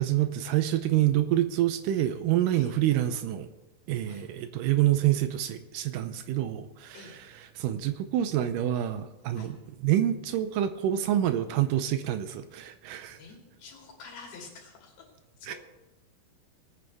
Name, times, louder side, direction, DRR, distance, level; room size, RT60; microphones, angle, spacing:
voice 1, 0.0-3.5 3.9-7.1 7.6-13.2 15.5-15.6, right 12 dB, 80° right, 10 dB, 2.0 m, -27 dB
voice 2, 13.1-15.1 15.4-15.6, left 5 dB, 75° left, -1 dB, 4.4 m, -48 dB
19.5 x 9.4 x 3.5 m, 1.0 s
omnidirectional pair, 4.3 m